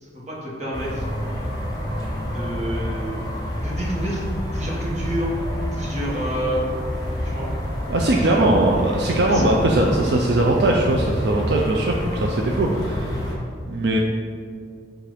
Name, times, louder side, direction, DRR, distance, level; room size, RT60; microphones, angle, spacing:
voice 1, 0.0-1.1 1.5-2.0 2.3-3.2 3.6-4.2 4.5-5.3 5.7-6.7 7.2-7.5 8.2-9.7 10.0-10.1, right 1 dB, 40° right, -4 dB, 1.3 m, -29 dB
sound 1, 0.7-13.4, equal, 20° left, 1.1 m, -28 dB
voice 2, 7.9-13.3 13.7-14.0, right 1 dB, 65° right, 0 dB, 0.5 m, -20 dB
7.4 x 2.6 x 5.0 m, 2.3 s
head